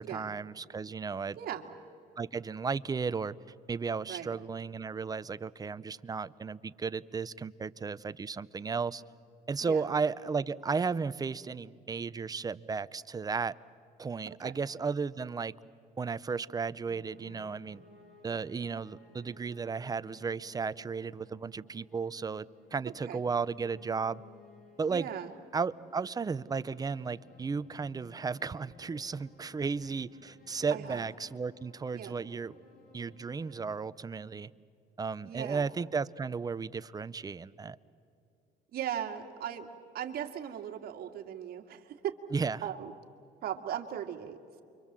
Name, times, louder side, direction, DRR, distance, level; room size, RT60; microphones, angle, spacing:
voice 1, 0.0-1.4 2.2-3.4 3.7-9.0 9.5-13.5 14.0-15.5 16.0-17.8 18.2-24.2 24.8-25.1 25.5-32.6 32.9-34.5 35.0-37.8 42.3-42.6, right 5 dB, 20° right, 16 dB, 0.6 m, -34 dB
voice 2, 1.4-1.7 4.1-4.4 9.7-9.8 14.4-14.5 23.0-23.2 24.9-25.3 30.7-31.0 31.9-32.2 35.2-35.6 38.7-39.7 39.9-42.2 42.6-42.9 43.4-44.6, right 10 dB, 65° right, 3 dB, 2.2 m, -38 dB
sound 1, 16.8-33.7, left 3 dB, 50° left, 7.3 m, -58 dB
29.0 x 24.5 x 7.5 m, 2.6 s
cardioid pair, 110°, 17 cm